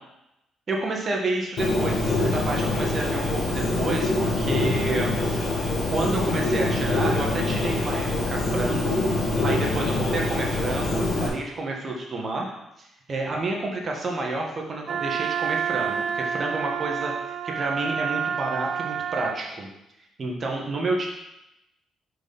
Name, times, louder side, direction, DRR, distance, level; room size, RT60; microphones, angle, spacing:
voice 1, 0.7-5.4 5.9-9.0 9.4-17.1 17.4-19.7 20.2-21.1, right 2 dB, 40° right, 0 dB, 1.5 m, -29 dB
Bird, 1.6-11.3, left 2 dB, 70° left, 1.4 m, -25 dB
Wind instrument woodwind instrument, 14.9-19.4, right 7 dB, 60° right, 0.3 m, -29 dB
5.1 x 4.9 x 4.1 m, 0.87 s
cardioid pair, 90°, 0 cm